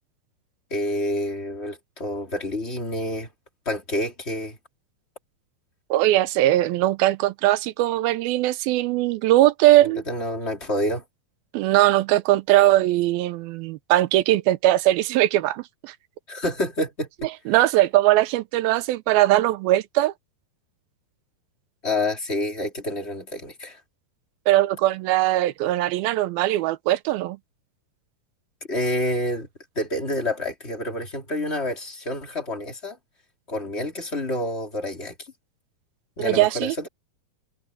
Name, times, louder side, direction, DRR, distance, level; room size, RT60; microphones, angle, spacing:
voice 1, 0.7-3.3 3.7-4.6 9.8-11.0 16.3-17.1 21.8-23.8 28.7-29.5 29.8-33.0 33.5-35.3 36.2-36.9, left 1 dB, 15° left, 3.4 m, -28 dB
voice 2, 5.9-10.0 11.5-15.9 17.5-20.1 24.5-27.4 36.2-36.8, right 15 dB, 80° right, 2.6 m, -20 dB
omnidirectional pair, 4.3 m